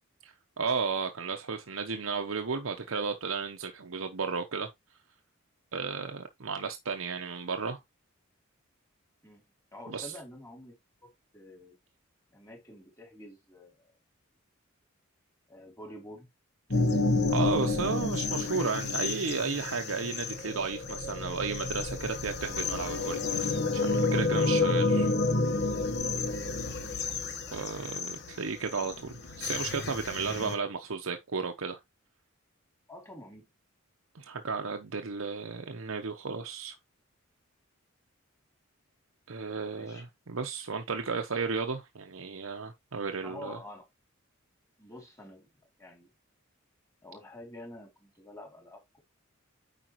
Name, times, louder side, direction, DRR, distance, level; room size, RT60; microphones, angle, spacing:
voice 1, 0.2-4.7 5.7-7.8 9.9-10.1 17.3-25.1 27.5-31.8 34.1-36.8 39.3-43.6, right 5 dB, 85° right, 0.8 m, -34 dB
voice 2, 9.7-10.8 11.0-11.8 12.3-13.9 15.5-16.3 17.2-17.3 17.8-18.1 26.3-26.7 27.0-27.1 27.5-27.6 32.9-33.5 39.8-40.0 43.2-43.9 44.8-45.5 45.8-46.1 47.0-49.0, left 1 dB, 15° left, 2.7 m, -48 dB
sound 1, 16.7-30.6, left 3 dB, 55° left, 1.1 m, -30 dB
9.0 x 5.0 x 3.0 m
head